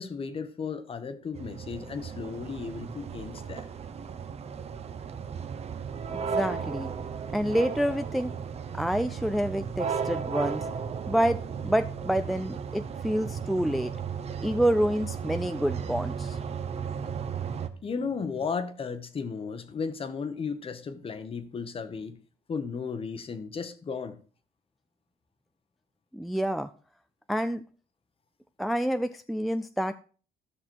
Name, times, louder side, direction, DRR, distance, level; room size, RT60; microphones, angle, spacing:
voice 1, 0.0-3.7 17.8-22.2 22.5-24.2, left 5 dB, 35° left, 1.0 m, -35 dB
sound 1, 1.3-17.7, right 6 dB, 40° right, 0.9 m, -35 dB
voice 2, 6.1-6.9 7.3-8.3 8.7-10.6 11.1-13.9 14.4-16.4 26.1-26.7 27.3-27.6 28.6-30.0, equal, ahead, 0.4 m, -28 dB
13.0 x 6.1 x 4.5 m
cardioid pair, 110°, 17 cm